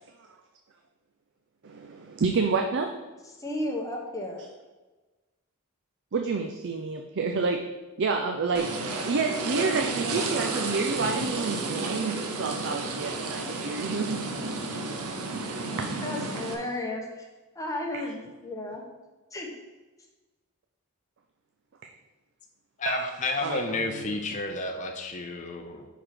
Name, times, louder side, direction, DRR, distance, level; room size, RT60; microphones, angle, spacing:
voice 1, 1.6-3.0 6.1-7.7 8.0-14.2 15.8-15.9 21.8-21.9 22.9-23.0 23.4-24.0, right 4 dB, 55° right, 4 dB, 0.5 m, -29 dB
voice 2, 3.2-4.4 14.9-15.3 15.8-17.3 17.5-18.8 19.3-19.5, left 1 dB, 15° left, 0 dB, 1.0 m, -34 dB
sound 1, 8.5-16.5, right 3 dB, 85° right, 0.9 m, -32 dB
voice 3, 22.8-25.9, left 3 dB, 35° left, 2 dB, 0.6 m, -31 dB
5.0 x 4.9 x 5.8 m, 1.2 s
head